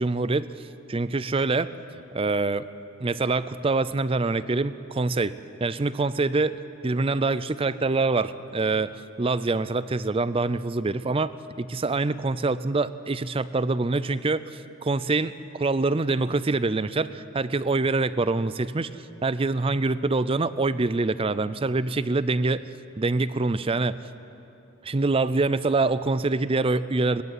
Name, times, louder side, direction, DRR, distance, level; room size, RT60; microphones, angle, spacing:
voice 1, 0.0-1.7 2.1-2.7 3.0-6.6 6.8-22.7 23.0-24.0 24.8-27.2, right 3 dB, 25° right, 15 dB, 0.5 m, -25 dB
20.5 x 15.0 x 9.7 m, 2.9 s
head